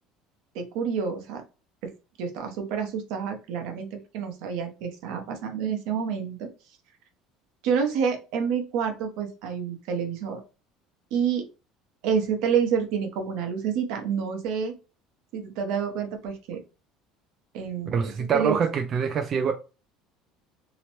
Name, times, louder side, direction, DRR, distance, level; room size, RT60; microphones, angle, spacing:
voice 1, 0.5-1.4 1.8-1.9 2.2-6.5 7.6-10.4 11.1-11.4 12.0-14.7 15.3-16.6 17.5-18.0 18.3-18.6, right 7 dB, 70° right, 0.8 m, -28 dB
voice 2, 17.9-19.5, right 6 dB, 35° right, 0.3 m, -25 dB
2.8 x 2.1 x 2.9 m
cardioid pair, 145°, 0 cm